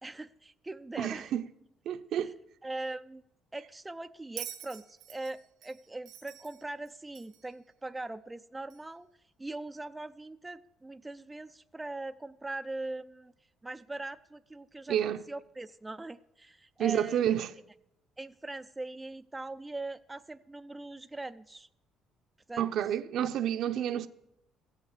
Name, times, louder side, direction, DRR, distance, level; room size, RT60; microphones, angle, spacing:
voice 1, 0.0-1.3 2.6-3.2 3.5-9.1 9.4-13.3 13.6-17.2 18.2-21.7 22.5-22.7 23.2-23.3, right 2 dB, 10° right, 0.4 m, -41 dB
voice 2, 1.0-1.5 1.9-2.4 14.9-15.2 16.8-17.5 22.6-24.1, right 10 dB, 65° right, 0.7 m, -29 dB
Bell, 4.4-7.6 8.7-8.8, right 12 dB, 85° right, 1.3 m, -46 dB
15.0 x 8.3 x 8.3 m
cardioid pair, 115°, 0 cm